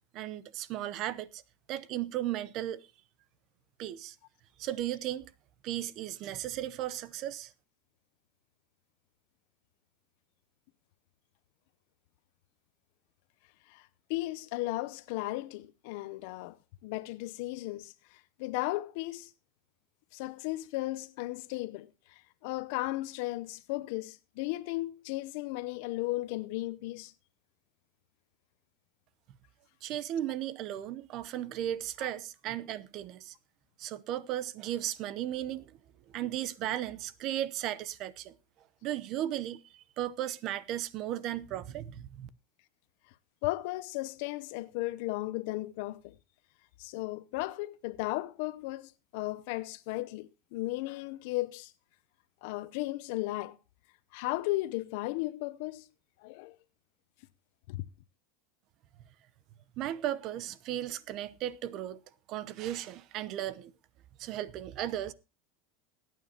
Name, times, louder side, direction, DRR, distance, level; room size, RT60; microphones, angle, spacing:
voice 1, 0.1-1.4 1.7-2.8 3.8-4.1 4.6-5.3 5.6-7.5 29.8-33.3 33.8-35.7 36.1-38.3 38.8-42.3 59.8-62.0 62.3-63.7 64.2-65.1, right 12 dB, 50° right, 0.8 m, -35 dB
voice 2, 13.7-16.6 16.8-19.3 20.1-27.1 32.0-32.1 43.4-46.1 46.8-51.7 52.4-53.6 54.1-55.9 56.2-56.6 57.7-57.9, left 19 dB, 65° left, 0.7 m, -35 dB
20.5 x 9.3 x 2.8 m
supercardioid pair, 125°, 0 cm